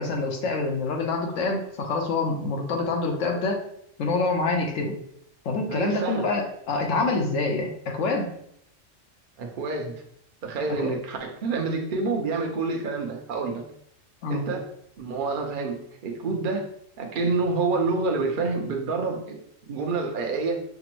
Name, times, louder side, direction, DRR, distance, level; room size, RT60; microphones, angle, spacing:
voice 1, 0.0-3.6 4.0-5.0 5.4-8.3 10.8-10.9 14.2-14.5, left 3 dB, 80° left, 2 dB, 1.1 m, -26 dB
voice 2, 5.7-6.3 9.4-10.0 10.4-13.6 14.3-14.7 15.0-16.7 17.0-20.6, right 3 dB, 50° right, 2 dB, 0.7 m, -28 dB
5.9 x 2.0 x 2.9 m, 0.69 s
omnidirectional pair, 1.3 m